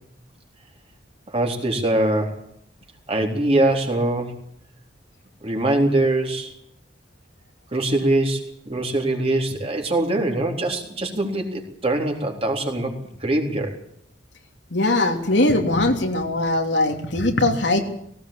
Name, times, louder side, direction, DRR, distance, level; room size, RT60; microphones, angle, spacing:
voice 1, 1.3-2.4 3.1-4.4 5.4-6.5 7.7-12.9 13.2-13.8, right 1 dB, 35° right, 2 dB, 3.7 m, -23 dB
voice 2, 14.7-17.8, left 2 dB, 75° left, 3 dB, 3.1 m, -20 dB
18.5 x 18.0 x 8.7 m, 0.71 s
head